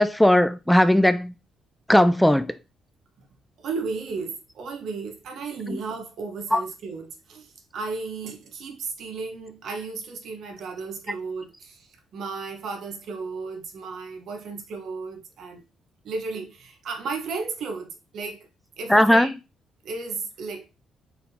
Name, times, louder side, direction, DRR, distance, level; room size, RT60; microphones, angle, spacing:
voice 1, 0.0-1.3 1.9-2.5 5.7-5.8 6.5-6.6 18.9-19.3, left 1 dB, 5° left, 0.3 m, -18 dB
voice 2, 3.6-15.6 16.0-18.5 18.8-19.3 19.8-20.7, right 4 dB, 70° right, 1.1 m, -34 dB
4.2 x 3.5 x 2.7 m
cardioid pair, 90°, 0 cm